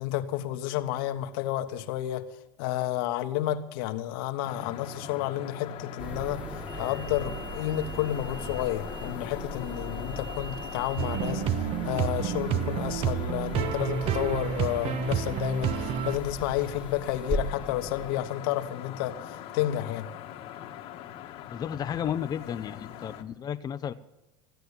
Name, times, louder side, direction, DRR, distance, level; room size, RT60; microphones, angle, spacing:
voice 1, 0.0-2.3 2.6-6.4 6.8-11.4 11.8-20.1, left 13 dB, 75° left, 9 dB, 1.2 m, -31 dB
sound 1, 4.4-23.2, left 10 dB, 55° left, 1.4 m, -42 dB
sound 2, 6.0-18.2, right 2 dB, 10° right, 1.9 m, -39 dB
sound 3, 11.0-16.2, right 9 dB, 50° right, 1.2 m, -29 dB
voice 2, 21.5-23.9, left 9 dB, 35° left, 9 dB, 0.7 m, -33 dB
15.5 x 9.2 x 8.2 m, 0.97 s
supercardioid pair, 100°, 12 cm